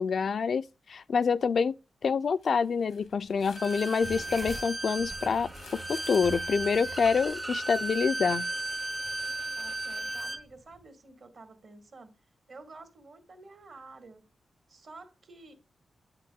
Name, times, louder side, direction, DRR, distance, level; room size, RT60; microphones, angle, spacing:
voice 1, 0.0-1.7 2.0-8.4, left 5 dB, 70° left, 0.3 m, -27 dB
sound 1, 2.2-7.3, left 6 dB, 85° left, 0.9 m, -52 dB
Bowed string instrument, 3.5-10.4, right 2 dB, 30° right, 0.6 m, -35 dB
sound 2, 4.0-10.9, right 3 dB, 50° right, 1.0 m, -47 dB
voice 2, 9.6-12.1 12.5-14.3 14.7-15.5, right 3 dB, 65° right, 1.6 m, -50 dB
8.4 x 5.8 x 2.3 m
cardioid pair, 55°, 0 cm